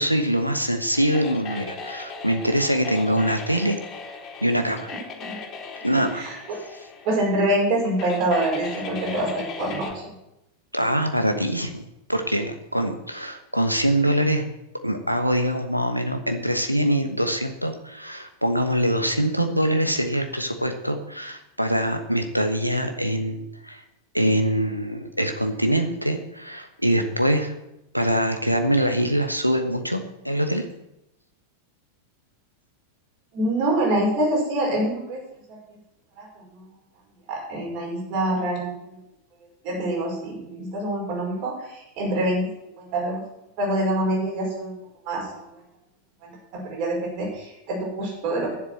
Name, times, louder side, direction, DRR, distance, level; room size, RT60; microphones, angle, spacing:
voice 1, 0.0-3.8 4.4-4.9 5.8-6.3 10.7-14.4 14.8-23.8 24.1-27.5 27.9-30.6, equal, 90° right, 6 dB, 1.2 m, -24 dB
sound 1, 0.9-9.9, left 4 dB, 30° left, 4.3 m, -38 dB
voice 2, 6.1-6.6 7.0-9.9 33.3-35.2 35.5-35.6 36.2-36.3 37.3-38.7 39.6-42.5 42.8-43.2 43.6-44.7 45.0-45.4 46.2-48.6, right 1 dB, 45° right, -2 dB, 5.5 m, -25 dB
9.9 x 7.6 x 7.7 m, 0.88 s
figure-of-eight pair, 90°, 0 cm